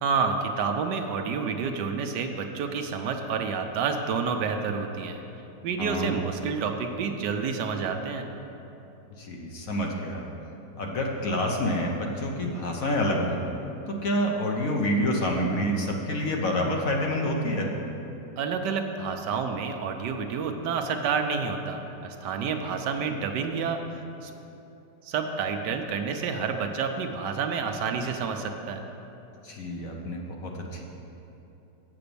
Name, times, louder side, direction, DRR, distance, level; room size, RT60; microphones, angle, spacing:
voice 1, 0.0-5.2 5.6-8.3 18.4-24.3 25.0-28.8, right 5 dB, 75° right, 5 dB, 1.3 m, -29 dB
voice 2, 5.8-6.1 9.2-10.3 10.8-13.4 13.9-17.7 29.4-30.8, equal, 60° left, 0 dB, 1.1 m, -28 dB
7.8 x 6.1 x 6.8 m, 2.9 s
omnidirectional pair, 1.9 m